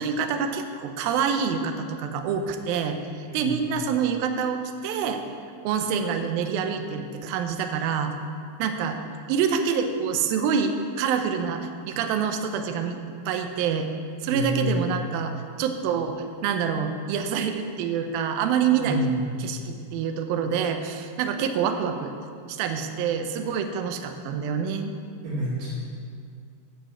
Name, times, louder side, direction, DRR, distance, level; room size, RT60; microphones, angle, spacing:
voice 1, 0.0-5.2 5.6-8.1 8.6-9.0 9.3-13.0 13.3-13.9 14.2-19.0 19.4-22.1 22.5-25.0, right 6 dB, 75° right, 6 dB, 2.3 m, -26 dB
voice 2, 14.3-14.7 18.8-19.3 25.2-25.7, equal, 60° right, -11 dB, 4.4 m, -29 dB
13.0 x 5.3 x 7.8 m, 2.2 s
omnidirectional pair, 4.8 m